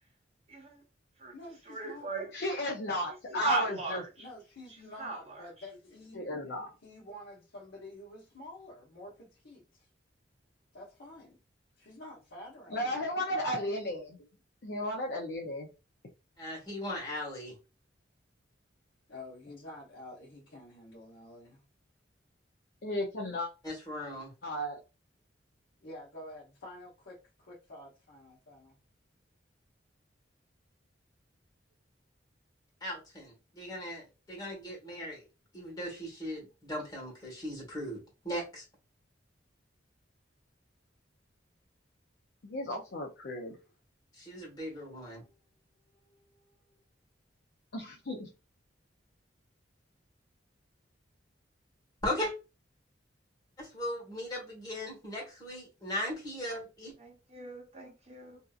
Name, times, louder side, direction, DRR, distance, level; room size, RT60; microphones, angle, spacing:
voice 1, 0.5-0.8 1.2-1.3 1.7-2.3 3.3-4.3 5.0-5.4 57.0-58.4, right 3 dB, 35° right, 0.8 m, -36 dB
voice 2, 1.3-2.1 4.2-6.3 6.8-9.9 10.7-11.4 11.8-13.3 19.1-21.6 25.8-28.8 44.9-45.4 45.9-46.8, left 1 dB, 90° left, 1.0 m, -49 dB
voice 3, 2.3-4.0 6.1-6.7 12.7-14.2 14.6-15.7 22.8-23.5 24.4-24.8 42.4-43.5 47.7-48.3, left 1 dB, 60° left, 0.5 m, -34 dB
voice 4, 16.4-17.5 23.6-24.3 32.8-35.2 35.5-38.6 44.1-45.2 52.0-52.3 53.6-56.9, left 1 dB, 20° left, 1.4 m, -38 dB
2.8 x 2.5 x 2.3 m
head